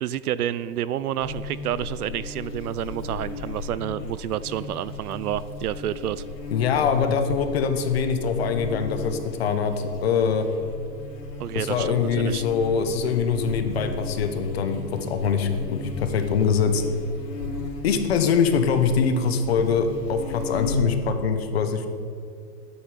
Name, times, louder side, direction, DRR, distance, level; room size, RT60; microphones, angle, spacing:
voice 1, 0.0-6.2 11.4-12.4, right 11 dB, 65° right, 17 dB, 0.6 m, -29 dB
Buzz, 1.2-21.0, left 3 dB, 85° left, 3.5 m, -35 dB
voice 2, 6.5-10.5 11.5-16.8 17.8-21.9, left 6 dB, 40° left, 7 dB, 1.1 m, -23 dB
9.4 x 8.6 x 9.3 m, 2.4 s
supercardioid pair, 180°, 49 cm